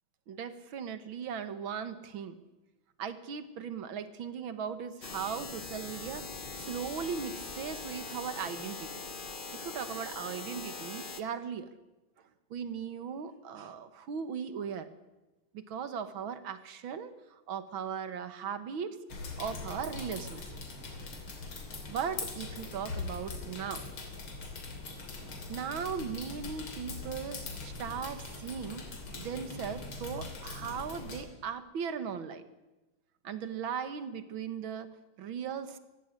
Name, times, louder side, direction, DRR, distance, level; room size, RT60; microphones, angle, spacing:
voice 1, 0.3-2.4 3.0-9.0 9.5-11.7 12.5-14.9 15.5-17.1 17.5-19.0 19.4-20.4 21.9-23.9 25.5-27.4 27.6-28.9 29.1-32.4 33.2-35.8, right 7 dB, 75° right, 11 dB, 2.2 m, -38 dB
sound 1, 5.0-11.2, left 4 dB, 30° left, 1.0 m, -42 dB
sound 2, 19.1-31.2, left 3 dB, 85° left, 3.9 m, -42 dB
18.0 x 15.5 x 9.7 m, 1.1 s
omnidirectional pair, 2.2 m